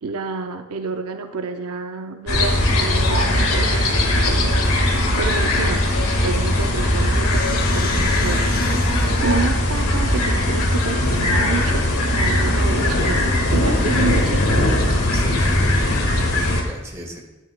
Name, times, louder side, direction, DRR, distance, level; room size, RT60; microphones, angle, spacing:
voice 1, 0.0-5.8 6.2-8.5 8.8-14.5, right 4 dB, 80° right, 7 dB, 0.6 m, -29 dB
sound 1, 2.3-16.6, left 1 dB, 80° left, 1.7 m, -19 dB
voice 2, 3.4-3.7 15.1-17.2, equal, 15° right, -1 dB, 1.5 m, -36 dB
sound 2, 6.5-9.4, left 5 dB, 45° left, 0.8 m, -32 dB
12.0 x 11.0 x 2.2 m, 1.1 s
head